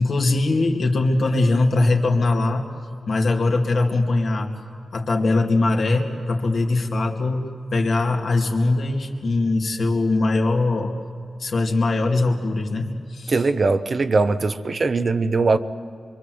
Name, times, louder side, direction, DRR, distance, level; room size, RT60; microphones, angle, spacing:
voice 1, 0.0-2.7 3.1-4.5 4.9-10.9 11.4-13.4, left 2 dB, 65° left, 2 dB, 2.5 m, -21 dB
voice 2, 13.3-15.6, right 3 dB, 45° right, 10 dB, 0.8 m, -20 dB
26.0 x 24.0 x 7.9 m, 2.3 s
wide cardioid pair, 125°, 0 cm